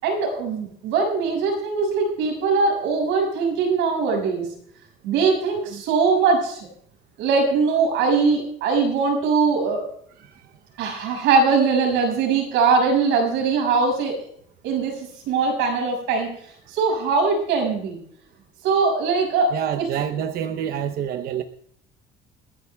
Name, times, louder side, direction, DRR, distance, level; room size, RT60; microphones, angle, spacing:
voice 1, 0.0-4.5 5.0-6.7 7.2-9.8 10.8-14.3 14.6-16.3 16.7-18.0 18.6-19.8, right 4 dB, 85° right, 1 dB, 6.4 m, -21 dB
voice 2, 19.5-21.4, right 9 dB, 50° right, 7 dB, 0.7 m, -27 dB
29.0 x 11.0 x 2.3 m, 0.64 s
cardioid pair, 155°, 19 cm